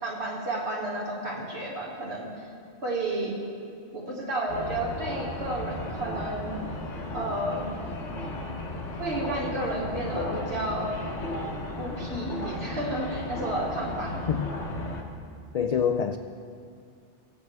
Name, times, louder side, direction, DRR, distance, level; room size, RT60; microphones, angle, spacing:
voice 1, 0.0-2.3 2.8-3.4 3.9-6.6 7.1-7.8 9.0-10.9 11.8-14.4, right 1 dB, 65° right, -4 dB, 2.4 m, -32 dB
sound 1, 4.5-15.0, left 1 dB, 85° left, 1.4 m, -34 dB
voice 2, 15.5-16.2, left 7 dB, 60° left, 6 dB, 0.4 m, -25 dB
21.0 x 8.0 x 3.3 m, 2.3 s
omnidirectional pair, 1.1 m